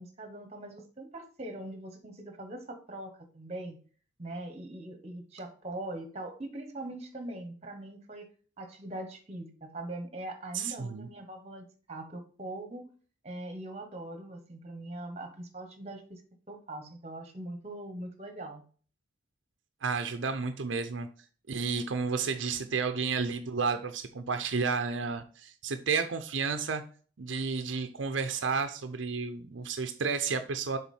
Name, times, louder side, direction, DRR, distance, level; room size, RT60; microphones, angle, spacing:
voice 1, 0.0-3.8 4.2-8.3 8.6-12.9 13.2-16.2 16.5-18.6, right 1 dB, 35° right, 6 dB, 1.2 m, -42 dB
voice 2, 10.5-11.1 19.8-21.1 21.5-26.8 27.2-30.8, right 5 dB, 85° right, 8 dB, 0.6 m, -31 dB
7.0 x 4.0 x 4.3 m, 0.41 s
head